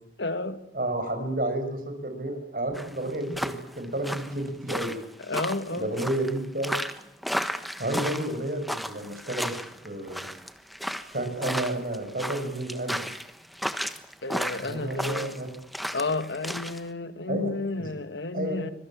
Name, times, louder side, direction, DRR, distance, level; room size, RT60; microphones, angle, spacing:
voice 1, 0.2-0.6 5.2-5.9 14.2-15.4 15.9-18.7, left 2 dB, 80° left, 11 dB, 2.0 m, -31 dB
voice 2, 0.7-4.9 5.7-6.7 7.8-9.5 9.8-10.2 11.1-13.0 14.6-15.5 17.3-17.9 18.3-18.6, right 1 dB, 50° right, 7 dB, 6.2 m, -31 dB
sound 1, 2.7-16.8, equal, ahead, 1.3 m, -33 dB
25.5 x 23.5 x 8.8 m, 0.76 s
head